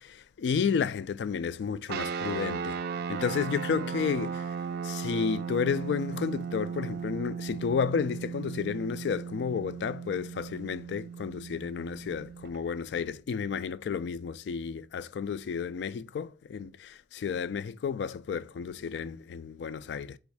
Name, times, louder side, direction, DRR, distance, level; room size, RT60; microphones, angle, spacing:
voice 1, 0.0-2.8 3.1-4.5 4.8-20.2, left 6 dB, 70° left, 0.3 m, -32 dB
sound 1, 1.9-12.6, right 6 dB, 60° right, 0.3 m, -36 dB
3.6 x 3.0 x 4.6 m
head